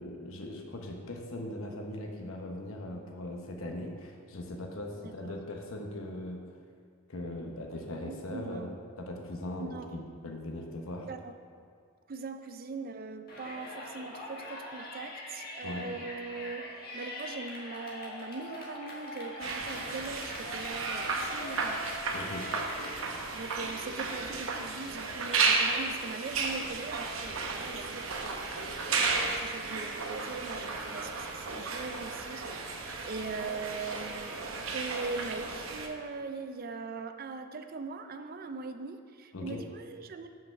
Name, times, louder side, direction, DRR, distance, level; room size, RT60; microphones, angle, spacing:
voice 1, 0.0-6.4 7.1-11.1 15.6-15.9 22.1-22.5 39.3-39.7, left 1 dB, 85° left, 2 dB, 1.0 m, -40 dB
voice 2, 5.0-5.3 8.0-8.8 9.6-10.0 11.1-11.4 12.1-21.9 23.3-34.5 34.7-40.3, right 4 dB, 45° right, 8 dB, 0.4 m, -41 dB
Yell, 13.3-23.0, left 1 dB, 50° left, 1.4 m, -43 dB
sound 1, 19.4-35.9, right 4 dB, 75° right, 0.8 m, -34 dB
5.6 x 5.5 x 6.3 m, 2.1 s
head